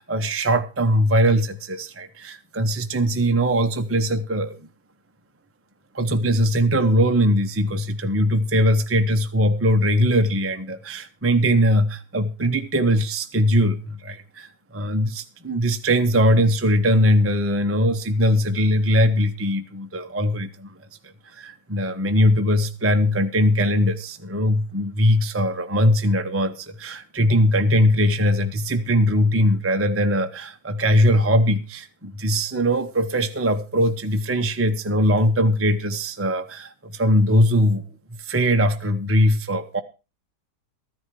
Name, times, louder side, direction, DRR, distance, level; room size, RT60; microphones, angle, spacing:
voice 1, 0.0-4.6 5.9-20.7 21.3-37.9 38.2-39.8, equal, 15° right, 0.5 m, -21 dB
14.5 x 10.5 x 4.7 m
omnidirectional pair, 1.7 m